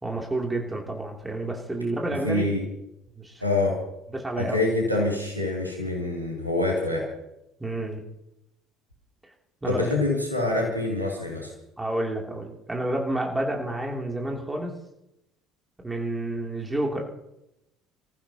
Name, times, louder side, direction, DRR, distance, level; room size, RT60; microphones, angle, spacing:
voice 1, 0.0-2.5 3.1-3.4 4.1-4.6 7.6-8.0 9.6-9.8 11.8-14.7 15.8-17.0, right 1 dB, 15° right, 0 dB, 3.0 m, -29 dB
voice 2, 2.1-2.6 3.4-3.8 4.4-7.1 9.6-11.5, left 2 dB, 90° right, -1 dB, 2.8 m, -26 dB
26.5 x 14.5 x 2.9 m, 0.85 s
figure-of-eight pair, 60°, 0 cm